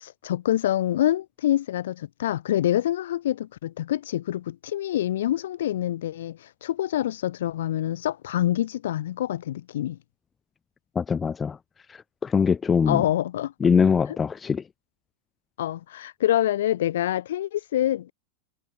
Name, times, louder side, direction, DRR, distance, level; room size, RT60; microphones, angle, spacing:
voice 1, 0.0-10.0 12.9-13.5 15.6-18.1, left 12 dB, 60° left, 6.4 m, -26 dB
voice 2, 11.0-11.6 11.9-13.0 13.6-14.6, left 6 dB, 20° left, 0.8 m, -22 dB
figure-of-eight pair, 90°, 0 cm